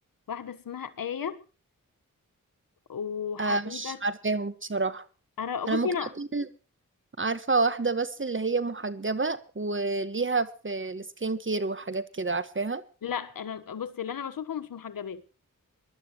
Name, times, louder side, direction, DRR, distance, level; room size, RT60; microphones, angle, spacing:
voice 1, 0.3-1.4 2.9-4.0 5.4-6.1 13.0-15.2, left 7 dB, 85° left, 1.3 m, -34 dB
voice 2, 3.4-5.0 5.7-5.9 6.2-6.5 7.2-12.8, right 3 dB, 35° right, 1.5 m, -29 dB
23.0 x 11.5 x 3.1 m
cardioid pair, 50°, 33 cm